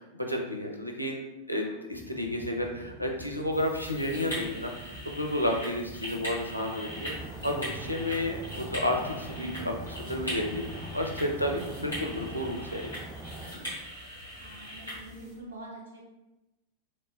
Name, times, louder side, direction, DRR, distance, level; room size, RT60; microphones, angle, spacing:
voice 1, 0.1-4.7 5.1-9.7 10.1-10.6 10.9-12.9, left 1 dB, 90° left, 2 dB, 0.4 m, -31 dB
sound 1, 1.9-12.6, equal, 30° left, 0.9 m, -47 dB
sound 2, 3.5-15.3, equal, 85° right, 1.4 m, -41 dB
sound 3, 6.9-13.5, right 2 dB, 5° right, 0.4 m, -43 dB
voice 2, 9.4-9.7 14.4-16.0, right 1 dB, 70° right, -4 dB, 0.9 m, -44 dB
3.0 x 2.1 x 3.0 m, 0.98 s
figure-of-eight pair, 90°, 0 cm